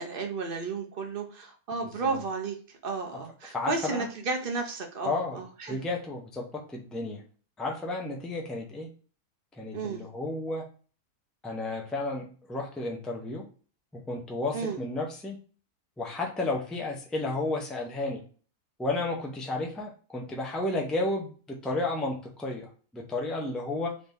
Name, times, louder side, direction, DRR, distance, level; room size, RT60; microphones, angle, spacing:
voice 1, 0.0-2.6 2.8-5.8 9.7-10.0 14.5-14.8, right 4 dB, 45° right, 4 dB, 0.8 m, -33 dB
voice 2, 1.8-2.2 3.5-4.1 5.0-5.4 5.7-7.2 7.6-8.9 9.5-10.6 11.4-13.5 13.9-15.4 16.0-18.2 18.8-24.0, left 2 dB, ahead, 0 dB, 0.6 m, -32 dB
4.1 x 2.9 x 3.4 m, 0.39 s
omnidirectional pair, 1.6 m